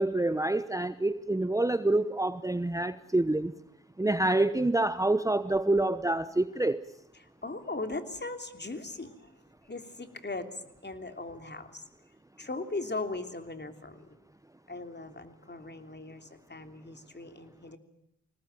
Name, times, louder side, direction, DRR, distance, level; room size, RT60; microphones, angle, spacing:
voice 1, 0.0-3.5 4.0-6.8, right 2 dB, 10° right, 0.9 m, -27 dB
voice 2, 7.4-9.3 9.7-10.5 10.8-11.8 12.4-14.1 14.7-17.8, left 2 dB, 30° left, 3.2 m, -38 dB
22.5 x 19.0 x 9.2 m
supercardioid pair, 45°, 34 cm